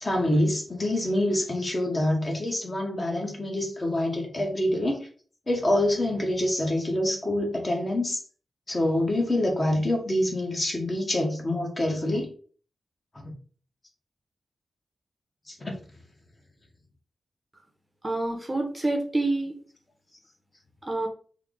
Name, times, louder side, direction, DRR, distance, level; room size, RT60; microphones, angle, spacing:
voice 1, 0.0-5.1 5.5-8.2 8.7-12.3 13.1-13.3 15.5-15.8, left 1 dB, 30° left, 1 dB, 0.9 m, -26 dB
voice 2, 18.0-19.6 20.8-21.1, right 2 dB, 20° right, 2 dB, 0.6 m, -27 dB
3.2 x 2.0 x 3.6 m, 0.42 s
wide cardioid pair, 115°, 0 cm